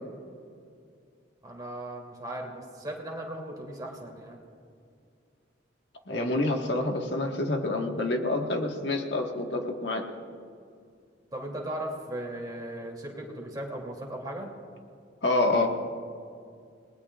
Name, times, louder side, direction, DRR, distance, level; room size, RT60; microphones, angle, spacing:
voice 1, 1.4-4.4 11.3-14.5, right 1 dB, 20° right, -1 dB, 2.8 m, -37 dB
voice 2, 6.1-10.0 15.2-15.7, left 2 dB, 70° left, 3 dB, 1.5 m, -27 dB
29.5 x 19.0 x 2.5 m, 2.4 s
head